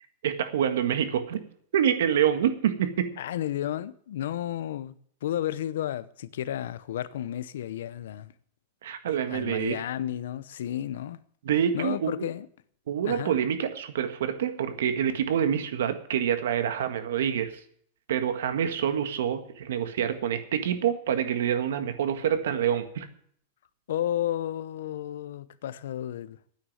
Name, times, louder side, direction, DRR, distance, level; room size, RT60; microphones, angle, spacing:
voice 1, 0.2-1.4 1.7-3.1 8.8-9.8 11.4-12.1 12.9-17.5 18.1-23.1, right 9 dB, 75° right, 1.7 m, -26 dB
voice 2, 3.2-5.0 5.2-8.3 9.3-11.2 11.7-12.5 13.0-13.4 23.9-26.4, left 11 dB, 70° left, 0.8 m, -32 dB
9.6 x 9.4 x 9.5 m
supercardioid pair, 180°, 0 cm